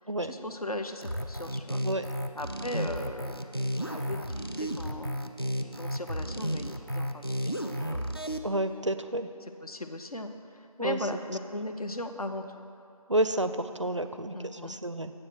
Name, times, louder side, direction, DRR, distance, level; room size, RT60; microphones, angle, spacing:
voice 1, 0.2-1.8 2.3-3.4 3.8-5.1 5.6-8.1 9.4-12.5 14.3-14.8, left 1 dB, 70° left, 7 dB, 0.7 m, -38 dB
sound 1, 1.0-8.4, equal, 40° left, 0.4 m, -33 dB
voice 2, 8.4-9.3 10.8-11.0 13.1-15.1, right 1 dB, 50° right, 10 dB, 0.4 m, -30 dB
7.6 x 7.2 x 6.3 m, 2.6 s
figure-of-eight pair, 180°, 20 cm